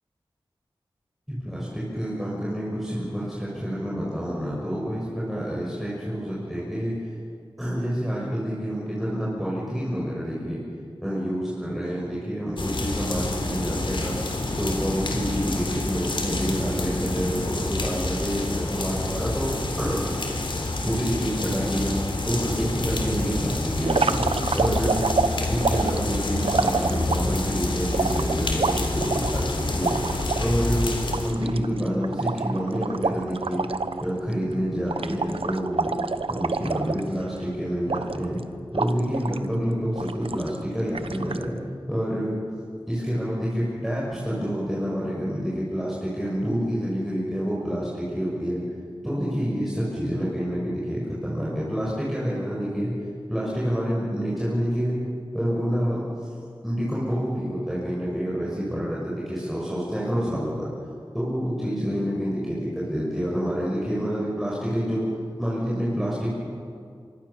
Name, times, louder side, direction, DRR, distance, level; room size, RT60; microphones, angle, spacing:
voice 1, 1.3-6.9 7.6-10.6 11.0-14.2 14.6-20.2 20.8-22.0 22.3-24.2 24.5-25.0 25.5-30.0 30.4-31.0 31.2-33.7 34.0-35.9 36.3-38.4 38.7-41.5 41.9-42.4 42.9-48.6 49.0-52.9 53.3-55.0 55.3-56.0 56.6-60.7 61.1-65.1 65.4-66.3, equal, ahead, -7 dB, 6.2 m, -28 dB
sound 1, 12.6-31.3, left 2 dB, 60° left, 3.6 m, -28 dB
sound 2, 23.8-27.4 27.9-30.4 30.8-30.9 31.1-34.0 34.3-34.5 34.9-37.4 37.9-38.4 38.7-39.4 40.0-40.6 40.9-41.4, right 4 dB, 75° right, 1.0 m, -27 dB
25.0 x 24.5 x 7.2 m, 2.3 s
wide cardioid pair, 80°, 9 cm